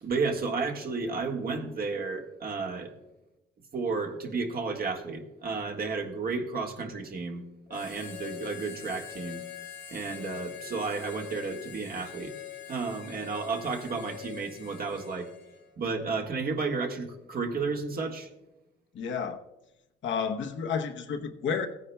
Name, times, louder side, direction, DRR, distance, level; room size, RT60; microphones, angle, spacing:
voice 1, 0.0-2.9 3.7-7.4 7.7-9.4 9.9-12.3 12.7-15.3 15.8-18.3, right 4 dB, 50° right, 2 dB, 1.5 m, -32 dB
Harmonica, 7.7-15.7, left 10 dB, 90° left, 2.5 m, -44 dB
voice 2, 18.9-19.4 20.0-21.7, left 6 dB, 70° left, 5 dB, 0.9 m, -31 dB
16.0 x 9.7 x 2.2 m, 0.95 s
cardioid pair, 90°, 20 cm